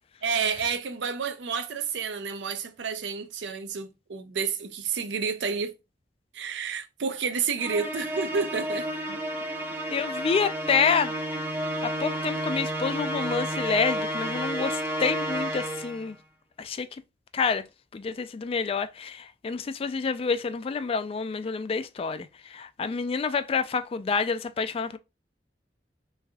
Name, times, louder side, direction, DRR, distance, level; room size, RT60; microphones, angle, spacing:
voice 1, 0.2-5.7 6.3-8.9, right 5 dB, 85° right, 0.5 m, -30 dB
Musical instrument, 7.6-16.1, right 1 dB, 10° right, 0.6 m, -31 dB
voice 2, 9.9-11.1 11.8-16.2 16.6-16.9 17.3-17.6 17.9-25.0, left 5 dB, 35° left, 0.3 m, -28 dB
3.4 x 3.3 x 2.3 m
head